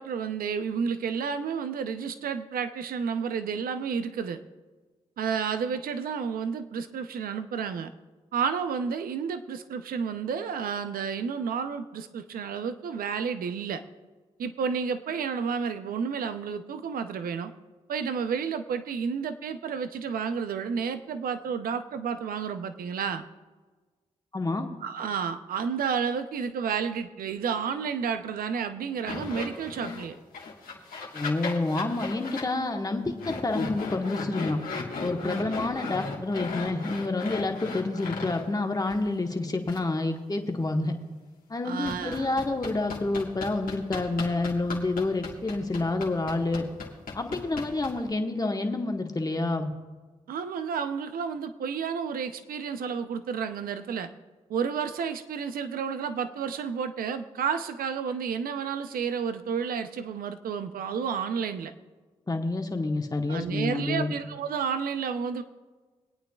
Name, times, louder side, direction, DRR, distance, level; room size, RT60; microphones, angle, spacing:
voice 1, 0.0-4.4 5.2-7.9 8.3-13.8 14.4-17.5 17.9-23.2 24.8-30.1 35.3-35.6 41.6-42.3 50.3-54.1 54.5-61.7 63.3-65.4, right 6 dB, 80° right, 10 dB, 0.7 m, -31 dB
voice 2, 24.3-24.7 31.1-34.6 35.0-40.9 41.5-46.7 47.1-49.7 62.3-64.1, left 2 dB, 25° left, 3 dB, 1.4 m, -28 dB
sound 1, 29.1-30.1 30.3-32.5 33.2-38.4 38.8-39.0 39.7-39.8 41.9-48.1, left 4 dB, 70° left, 1.9 m, -36 dB
24.5 x 8.9 x 2.4 m, 1.3 s
supercardioid pair, 45°, 15 cm